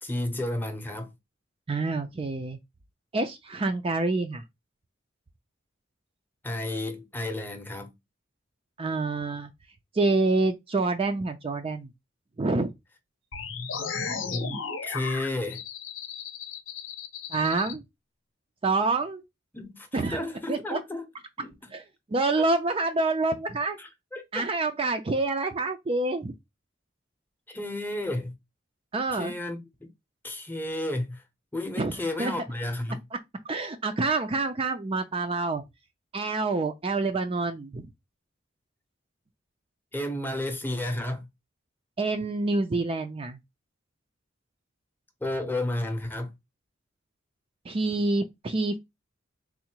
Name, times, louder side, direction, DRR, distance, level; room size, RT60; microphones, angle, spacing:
voice 1, 0.0-1.1 6.4-7.9 13.8-13.9 14.3-14.5 14.8-15.6 19.5-21.1 21.4-21.5 22.4-22.5 23.8-24.4 27.5-28.4 29.1-29.9 30.2-31.2 31.5-33.0 39.9-41.3 45.2-46.3, left 1 dB, 10° left, 0.7 m, -32 dB
voice 2, 1.7-2.6 3.1-4.4 8.8-9.5 9.9-11.9 12.4-12.7 17.3-17.8 18.6-19.2 19.9-20.2 20.5-20.8 21.7-21.8 22.1-23.8 24.3-26.3 28.9-29.3 31.8-31.9 32.2-32.3 33.5-35.6 36.1-37.9 42.0-43.4 47.7-48.8, right 3 dB, 30° right, 0.4 m, -27 dB
sound 1, 13.3-17.7, left 5 dB, 85° left, 0.7 m, -35 dB
3.7 x 2.1 x 4.4 m
head